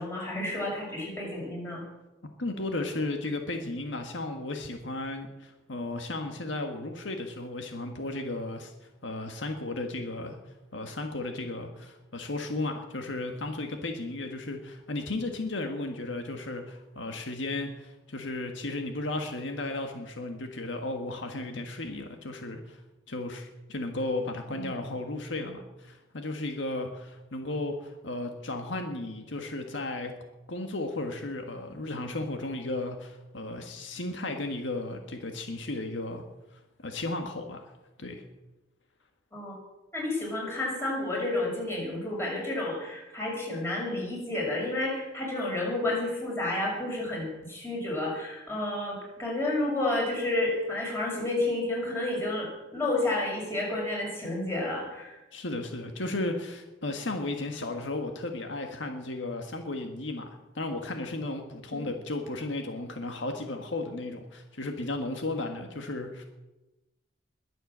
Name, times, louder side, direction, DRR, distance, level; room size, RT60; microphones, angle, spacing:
voice 1, 0.0-1.8 24.5-24.8 39.3-39.5 39.9-55.2, left 2 dB, 15° left, -3 dB, 6.1 m, -30 dB
voice 2, 2.4-10.4 10.7-22.8 23.1-30.1 30.5-36.2 36.5-37.7 38.0-38.2 55.3-66.2, left 2 dB, 75° left, 4 dB, 1.6 m, -34 dB
21.5 x 7.9 x 7.5 m, 1.0 s
head